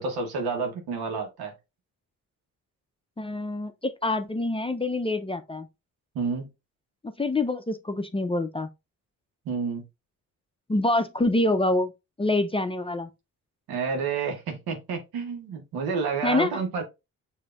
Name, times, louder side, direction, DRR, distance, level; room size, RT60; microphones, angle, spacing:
voice 1, 0.0-1.5 6.1-6.5 9.4-9.8 13.7-16.8, right 5 dB, 85° right, 1.2 m, -29 dB
voice 2, 3.2-5.7 7.0-8.7 10.7-11.9 12.2-13.1 16.2-16.5, left 2 dB, 15° left, 0.6 m, -26 dB
6.7 x 2.8 x 2.4 m
supercardioid pair, 50°, 36 cm